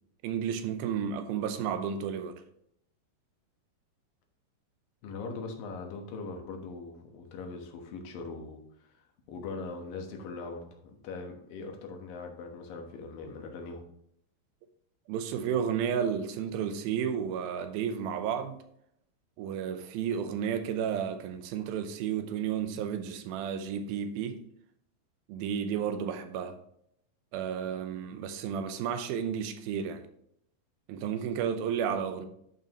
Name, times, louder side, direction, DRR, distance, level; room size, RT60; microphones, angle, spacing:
voice 1, 0.2-2.4 15.1-18.6 19.4-24.4 25.3-26.6 27.3-30.0 30.9-32.3, right 8 dB, 80° right, 2.6 m, -32 dB
voice 2, 5.0-9.0 9.3-10.6 11.0-13.8, left 4 dB, 70° left, 2.8 m, -41 dB
11.0 x 5.5 x 3.0 m
omnidirectional pair, 4.3 m